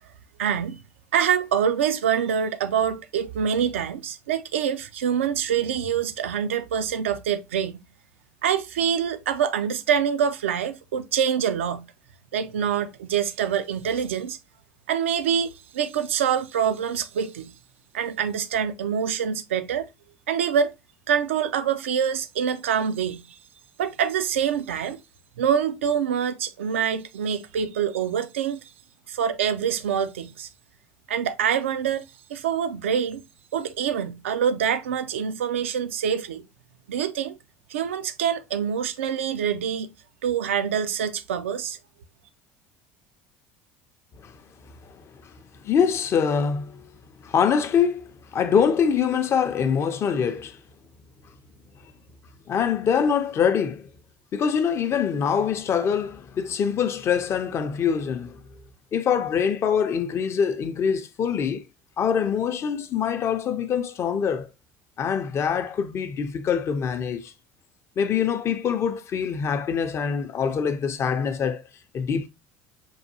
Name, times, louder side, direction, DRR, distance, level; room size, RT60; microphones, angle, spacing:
voice 1, 0.4-0.8 1.1-7.8 8.4-11.9 12.3-14.4 14.9-15.5 15.7-17.5 17.9-19.9 20.3-20.7 21.1-23.2 23.8-25.0 25.4-28.6 29.1-30.5 31.1-32.0 32.3-33.2 33.5-36.4 36.9-37.3 37.7-39.9 40.2-41.8, right 8 dB, 85° right, 0.3 m, -25 dB
voice 2, 45.6-46.9 47.2-50.6 52.5-53.9 54.3-58.4 58.9-61.6 62.0-64.5 65.0-67.3 68.0-71.6 71.9-72.3, left 7 dB, 40° left, 0.5 m, -24 dB
5.4 x 2.3 x 2.7 m
hypercardioid pair, 70°, 7 cm